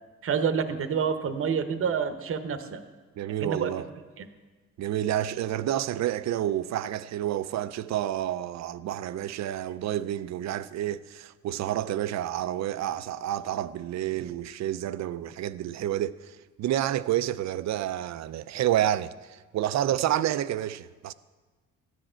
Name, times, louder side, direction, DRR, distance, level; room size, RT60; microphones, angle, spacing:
voice 1, 0.2-2.8 3.4-3.7 4.2-4.3, right 6 dB, 45° right, 0.9 m, -28 dB
voice 2, 3.2-3.9 4.8-21.1, right 12 dB, 65° right, 0.5 m, -29 dB
14.0 x 10.0 x 4.4 m
cardioid pair, 90°, 30 cm